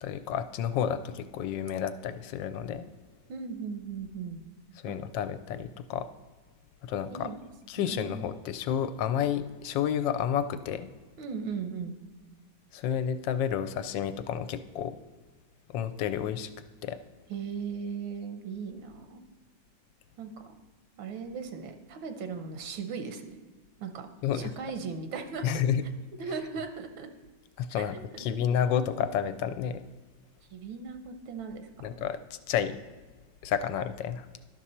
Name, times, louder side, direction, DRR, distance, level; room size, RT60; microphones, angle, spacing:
voice 1, 0.0-2.9 4.8-6.1 6.8-7.3 7.7-10.9 12.7-15.0 15.7-16.5 16.8-17.0 24.2-24.5 25.4-25.8 27.6-29.8 31.8-32.2 32.5-32.8 33.4-34.3, left 8 dB, 75° left, 12 dB, 1.2 m, -30 dB
voice 2, 3.3-4.4 4.9-5.0 7.1-7.4 7.8-8.3 11.2-12.0 17.3-19.2 20.2-20.5 21.0-23.4 23.8-24.1 24.3-25.6 26.2-27.1 27.7-27.8 28.1-28.2 30.5-31.7, right 5 dB, 90° right, 7 dB, 1.7 m, -38 dB
11.5 x 6.1 x 4.3 m, 1.3 s
omnidirectional pair, 2.1 m